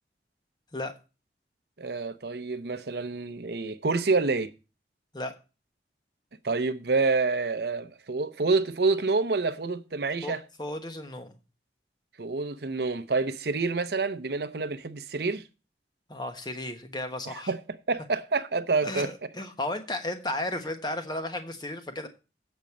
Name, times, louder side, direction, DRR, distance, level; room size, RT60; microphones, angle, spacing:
voice 1, 1.8-4.5 6.4-10.4 12.2-15.4 17.3-17.6 17.9-19.1, right 3 dB, 65° right, 0.7 m, -27 dB
voice 2, 10.6-11.3 16.1-17.5 18.8-22.1, left 1 dB, 25° left, 1.1 m, -34 dB
8.1 x 5.2 x 7.2 m
head